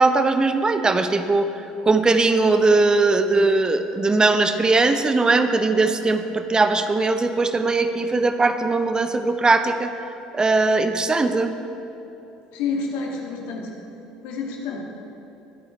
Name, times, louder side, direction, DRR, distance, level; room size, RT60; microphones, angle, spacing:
voice 1, 0.0-1.5 1.8-9.9 10.3-11.5, right 3 dB, 20° right, 8 dB, 0.8 m, -19 dB
voice 2, 12.5-13.7 14.2-14.8, left 4 dB, 65° left, -1 dB, 2.0 m, -28 dB
23.0 x 8.7 x 3.2 m, 3.0 s
figure-of-eight pair, 60°, 4 cm